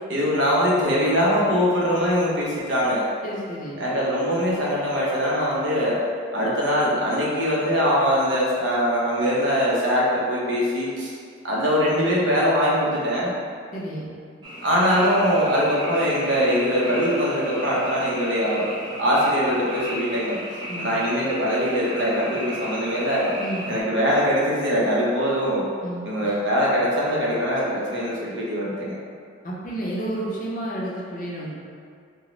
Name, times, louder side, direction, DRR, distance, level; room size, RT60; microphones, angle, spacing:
voice 1, 0.1-3.0 3.8-6.0 6.3-11.1 11.4-13.3 14.6-18.7 19.0-20.4 20.8-23.3 23.7-25.6 26.0-28.9, equal, 65° right, -6 dB, 0.7 m, -22 dB
voice 2, 3.2-3.8 13.7-14.1 20.7-20.9 23.4-23.7 25.8-26.1 29.4-31.5, right 1 dB, 40° left, -5 dB, 0.5 m, -31 dB
Frog, 14.4-23.8, equal, 25° right, 0.6 m, -35 dB
3.7 x 2.0 x 3.0 m, 2.2 s
head